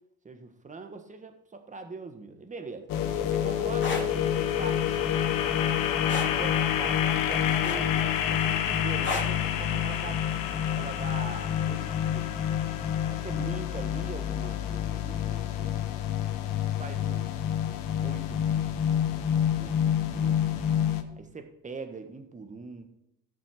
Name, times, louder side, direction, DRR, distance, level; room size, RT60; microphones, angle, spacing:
voice 1, 0.2-5.3 6.1-10.2 10.7-12.4 13.1-15.8 16.8-17.3 18.0-18.7 19.5-20.7 21.2-22.8, right 4 dB, 20° right, 6 dB, 1.6 m, -42 dB
sound 1, 2.9-21.0, left 9 dB, 65° left, 1.3 m, -28 dB
sound 2, 3.8-4.1 6.1-6.3 7.6-8.1 9.0-9.4 10.8-11.0, left 3 dB, 30° left, 3.0 m, -32 dB
16.0 x 6.0 x 5.0 m, 0.81 s
cardioid pair, 105°, 36 cm